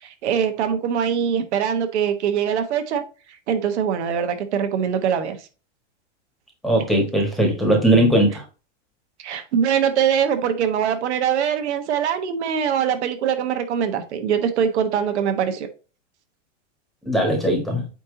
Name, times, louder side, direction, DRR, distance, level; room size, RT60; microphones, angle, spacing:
voice 1, 0.0-3.0 3.3-5.5 9.2-15.7, right 8 dB, 65° right, 1.3 m, -23 dB
voice 2, 6.6-8.4 17.0-17.8, right 1 dB, ahead, 1.5 m, -19 dB
8.9 x 3.0 x 3.9 m
supercardioid pair, 165°, 36 cm